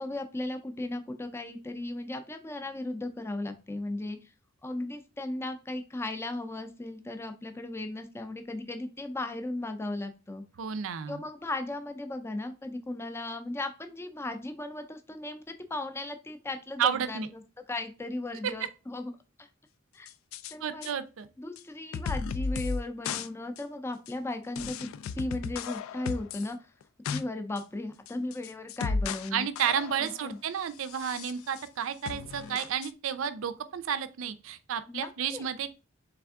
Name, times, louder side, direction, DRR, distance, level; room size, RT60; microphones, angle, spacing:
voice 1, 0.0-4.3 4.6-10.4 11.1-17.4 17.7-19.1 19.4-19.5 19.9-20.1 20.5-20.9 21.4-24.9 25.1-26.6 27.1-29.5 30.0-30.4 34.9-35.5, left 2 dB, 15° left, 0.4 m, -36 dB
voice 2, 10.6-11.2 16.8-17.3 18.4-18.5 20.6-21.3 29.3-35.7, right 8 dB, 75° right, 0.4 m, -31 dB
sound 1, 20.1-20.5 20.8-20.9 21.6-21.7 21.9-22.8 23.0-23.3 23.6-23.7 24.1-24.2 24.6-26.5 26.8-27.2 27.6-27.7 28.1-29.3 29.6-30.2 30.8-31.7 32.1-32.9, left 5 dB, 85° left, 0.3 m, -35 dB
3.4 x 3.4 x 3.5 m
head